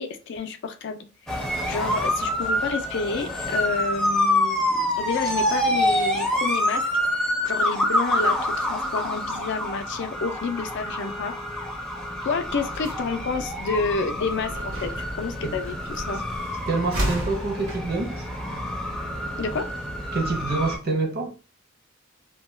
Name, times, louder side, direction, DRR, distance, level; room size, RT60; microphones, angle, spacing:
voice 1, 0.0-1.4 1.7-6.9 7.1-11.3 12.2-16.2 19.4-19.7, left 4 dB, 60° left, 0.4 m, -30 dB
sound 1, 1.3-20.8, left 1 dB, 5° left, 0.5 m, -27 dB
sound 2, 12.4-19.7, equal, 70° right, 1.0 m, -35 dB
voice 2, 16.7-18.3 20.1-21.3, right 3 dB, 50° right, 0.6 m, -26 dB
2.2 x 2.1 x 3.1 m
head